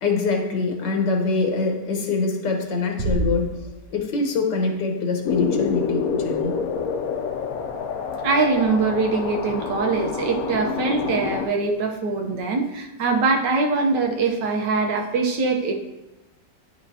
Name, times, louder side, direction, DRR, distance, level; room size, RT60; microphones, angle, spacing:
voice 1, 0.0-3.6 3.9-6.6, left 4 dB, 90° left, 2 dB, 1.7 m, -24 dB
sound 1, 3.0-4.4, right 3 dB, 60° right, 0.6 m, -28 dB
sound 2, 5.2-11.5, left 5 dB, 65° left, 1.0 m, -27 dB
voice 2, 8.2-15.7, right 4 dB, 80° right, 3 dB, 1.5 m, -22 dB
10.0 x 5.1 x 2.7 m, 1.0 s
omnidirectional pair, 1.9 m